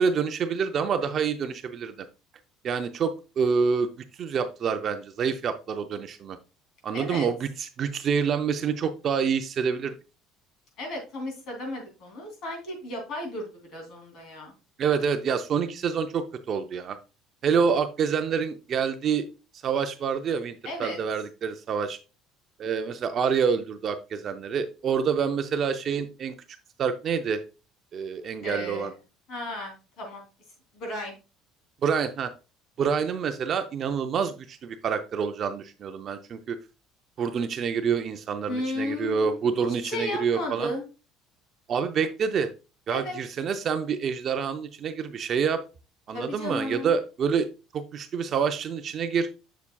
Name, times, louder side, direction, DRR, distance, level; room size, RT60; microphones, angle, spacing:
voice 1, 0.0-2.1 2.6-3.9 4.2-6.4 6.8-9.9 14.8-17.0 17.4-19.2 19.6-22.0 22.6-26.4 26.8-27.4 27.9-28.9 31.8-32.3 32.8-36.6 37.2-40.7 41.7-42.5 42.9-45.6 46.1-47.5 47.7-49.3, right 6 dB, 30° right, 8 dB, 0.5 m, -27 dB
voice 2, 6.9-7.3 10.8-14.5 20.6-21.0 28.4-28.9 29.3-30.3 30.7-31.2 38.5-40.8 42.9-43.2 46.1-46.9, left 1 dB, 45° left, 2 dB, 2.8 m, -34 dB
7.1 x 6.9 x 2.2 m, 0.31 s
cardioid pair, 175°, 0 cm